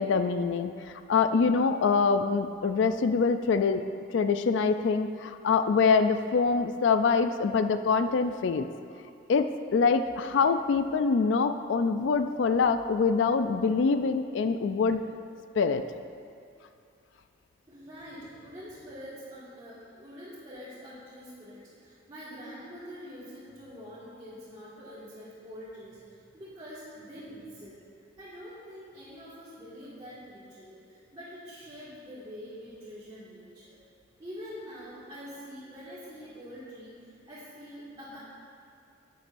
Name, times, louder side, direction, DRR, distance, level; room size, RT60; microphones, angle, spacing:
voice 1, 0.0-3.8 4.1-8.7 9.3-15.0 15.6-15.8, left 5 dB, 65° left, 9 dB, 0.4 m, -25 dB
voice 2, 17.7-27.8 28.2-33.8 34.2-38.2, equal, 25° right, -13 dB, 1.9 m, -45 dB
11.5 x 9.1 x 2.6 m, 2.4 s
head